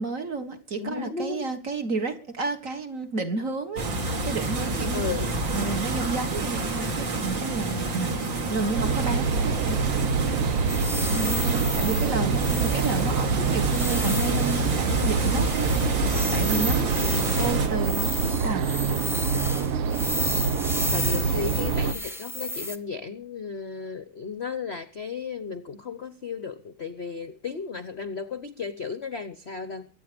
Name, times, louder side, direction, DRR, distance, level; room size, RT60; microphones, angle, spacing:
voice 1, 0.0-3.8 4.2-5.2 5.5-8.1 8.5-9.8 11.1-15.8 16.3-16.9 17.4-18.2 18.4-18.8, right 3 dB, 40° right, 1.9 m, -31 dB
voice 2, 0.7-1.5 4.9-5.3 17.0-17.5 20.9-29.9, left 5 dB, 45° left, 0.8 m, -34 dB
sound 1, 3.8-17.7, right 2 dB, 60° right, 3.2 m, -28 dB
sound 2, 8.7-21.9, right 6 dB, 85° right, 2.0 m, -26 dB
sound 3, 10.7-22.8, equal, ahead, 0.9 m, -33 dB
23.5 x 9.3 x 5.2 m
omnidirectional pair, 2.3 m